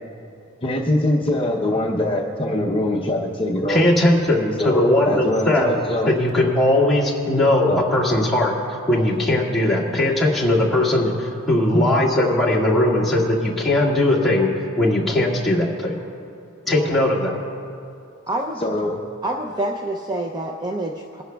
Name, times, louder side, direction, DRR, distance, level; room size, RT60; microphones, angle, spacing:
voice 1, 0.6-3.8 4.6-6.1 7.7-7.8 11.7-11.8 18.6-19.0, left 1 dB, 25° left, -2 dB, 0.7 m, -23 dB
voice 2, 3.7-5.7 6.1-8.5 8.9-14.5 14.8-15.9 16.7-17.4, left 1 dB, ahead, -7 dB, 1.8 m, -19 dB
voice 3, 18.3-18.6 19.2-21.2, right 1 dB, 20° right, 1 dB, 0.5 m, -27 dB
21.5 x 11.0 x 2.3 m, 2.6 s
head